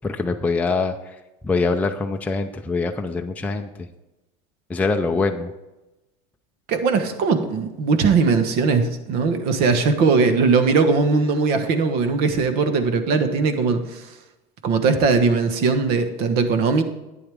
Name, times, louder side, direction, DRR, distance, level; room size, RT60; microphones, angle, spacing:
voice 1, 0.0-0.9 1.4-3.7 4.7-5.5, left 3 dB, 10° left, 4 dB, 0.5 m, -23 dB
voice 2, 6.7-14.1 14.6-16.8, right 4 dB, 55° right, 8 dB, 1.3 m, -20 dB
11.5 x 9.3 x 3.5 m, 1.0 s
supercardioid pair, 135°, 19 cm